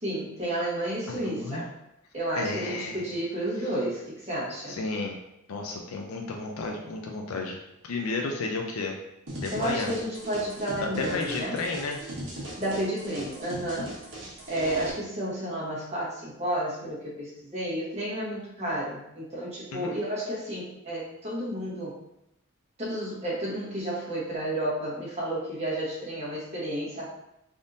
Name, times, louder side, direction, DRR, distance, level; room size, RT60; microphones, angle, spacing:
voice 1, 0.0-1.7 2.1-4.8 9.5-11.6 12.6-13.9 14.5-22.0 22.8-27.2, right 1 dB, 30° right, -6 dB, 1.1 m, -31 dB
voice 2, 1.1-1.6 2.3-3.1 4.7-5.2 5.5-7.6 7.8-9.0 9.4-9.9 10.8-12.0 19.7-20.0, left 3 dB, 75° left, 1 dB, 0.4 m, -32 dB
sound 1, 9.3-14.9, right 1 dB, 60° right, 1.0 m, -39 dB
3.5 x 2.5 x 2.6 m, 0.83 s
head